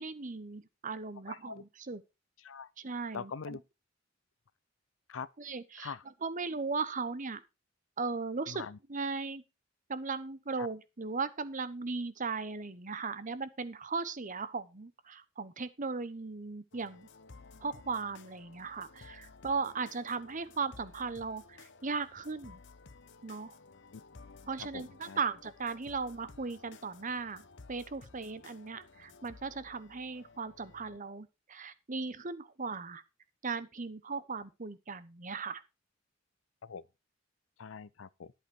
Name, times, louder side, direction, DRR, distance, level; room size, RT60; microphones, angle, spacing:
voice 1, 0.0-2.0 2.8-3.3 5.4-5.9 6.2-7.4 8.0-8.6 8.9-9.4 9.9-17.1 17.6-22.6 23.2-23.5 24.5-33.0 33.4-35.6, right 4 dB, 40° right, 1.0 m, -37 dB
voice 2, 1.3-1.6 2.4-2.7 3.1-3.6 5.1-5.3 5.8-6.0 8.5-8.8 10.6-10.7 23.9-24.0 24.6-25.2 36.6-36.8 37.6-38.3, left 5 dB, 90° left, 0.6 m, -43 dB
sound 1, 16.7-31.0, left 4 dB, 65° left, 0.9 m, -55 dB
11.0 x 8.2 x 4.5 m
head